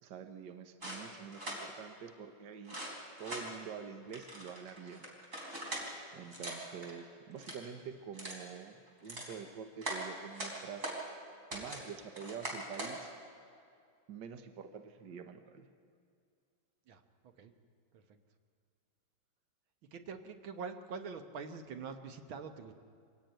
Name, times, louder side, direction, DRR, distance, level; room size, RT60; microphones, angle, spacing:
voice 1, 0.0-2.8 3.2-5.1 6.1-10.9 11.5-13.1 14.1-15.7, right 7 dB, 65° right, 8 dB, 1.7 m, -47 dB
sound 1, 0.8-1.6 2.6-3.5 4.1-5.9 6.3-6.9 7.3-7.7 8.1-8.4 8.9-9.3 9.8-11.0 11.5-11.8 12.1-13.0, right 1 dB, 40° right, 4.4 m, -42 dB
voice 2, 19.9-22.7, right 5 dB, 90° right, 7 dB, 2.0 m, -44 dB
24.0 x 17.0 x 9.1 m, 2.3 s
omnidirectional pair, 2.1 m